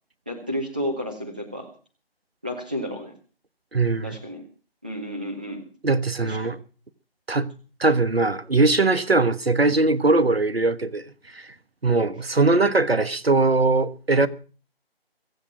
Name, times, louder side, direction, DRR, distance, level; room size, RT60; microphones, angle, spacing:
voice 1, 0.3-1.7 2.4-3.1 4.0-4.5 4.8-5.7 6.2-6.5, equal, 10° right, 0.7 m, -31 dB
voice 2, 3.7-4.2 5.8-6.6 7.3-7.5 7.8-11.0 11.3-11.5 11.8-14.3, right 3 dB, 75° right, 1.3 m, -21 dB
23.5 x 7.8 x 6.0 m
figure-of-eight pair, 160°, 30 cm